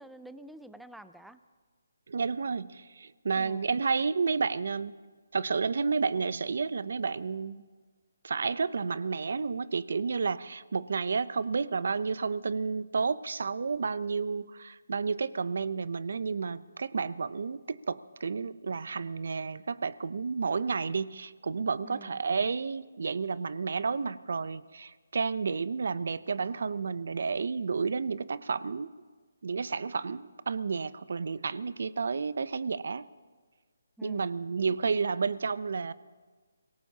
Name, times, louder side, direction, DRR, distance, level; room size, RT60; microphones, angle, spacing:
voice 1, 0.0-1.4 3.4-3.7 21.8-22.2 34.0-34.3, right 1 dB, ahead, 12 dB, 0.4 m, -48 dB
voice 2, 2.1-4.9 5.3-7.6 8.2-28.9 29.4-33.0 34.0-35.9, right 5 dB, 65° right, 18 dB, 0.5 m, -31 dB
25.5 x 17.5 x 2.8 m, 1.5 s
hypercardioid pair, 160°, 0 cm